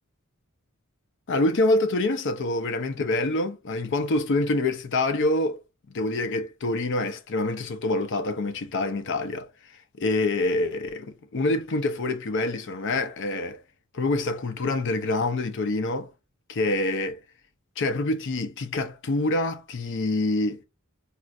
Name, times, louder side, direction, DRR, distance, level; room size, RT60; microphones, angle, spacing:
voice 1, 1.3-5.6 5.9-9.5 10.0-13.6 13.9-16.1 16.5-17.2 17.8-20.6, left 2 dB, 60° left, 0.5 m, -26 dB
4.3 x 2.5 x 2.4 m
head